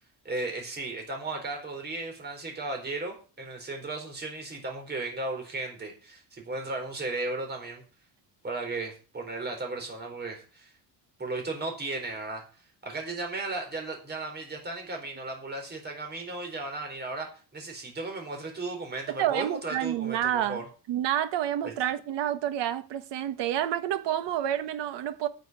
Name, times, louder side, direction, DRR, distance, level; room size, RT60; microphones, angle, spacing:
voice 1, 0.2-7.8 8.4-10.7 11.2-12.4 12.8-20.6 21.6-21.7, right 2 dB, 25° right, 4.3 m, -35 dB
voice 2, 19.2-20.6 20.9-25.3, right 11 dB, 80° right, 1.5 m, -29 dB
9.6 x 7.0 x 9.0 m
cardioid pair, 165°, 42 cm